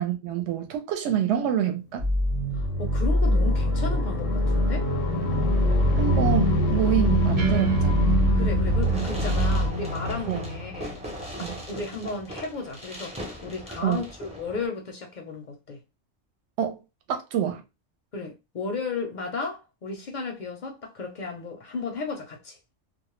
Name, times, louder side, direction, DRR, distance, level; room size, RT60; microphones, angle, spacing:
voice 1, 0.0-2.1 6.0-8.2 10.3-10.4 11.4-11.6 13.8-14.0 16.6-16.8 17.1-17.6, right 10 dB, 70° right, 0.8 m, -26 dB
sound 1, 1.9-11.2, left 4 dB, 80° left, 0.9 m, -30 dB
sound 2, 2.0-9.7, right 1 dB, 35° right, 0.8 m, -24 dB
voice 2, 2.5-4.9 8.4-11.0 11.4-15.8 18.1-22.6, left 4 dB, 55° left, 0.6 m, -34 dB
Fireworks, 8.7-14.7, equal, 10° right, 0.4 m, -38 dB
2.3 x 2.0 x 3.0 m
omnidirectional pair, 1.3 m